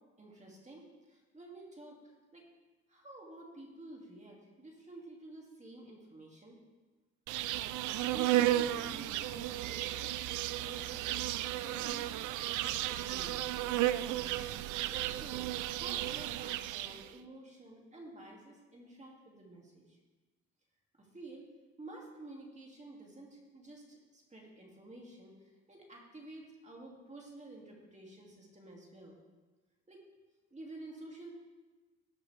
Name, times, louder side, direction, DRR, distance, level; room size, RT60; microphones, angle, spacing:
voice 1, 0.2-0.8 1.1-2.5 2.9-6.6 7.8-10.1 10.6-14.0 14.9-15.5 15.7-20.0 21.0-21.5 21.8-29.2 29.9-30.0 30.5-31.3, right 2 dB, 25° right, -2 dB, 2.4 m, -51 dB
Insect, 7.3-17.1, right 14 dB, 80° right, 0.5 m, -34 dB
17.5 x 6.0 x 3.4 m, 1.2 s
cardioid pair, 90°, 30 cm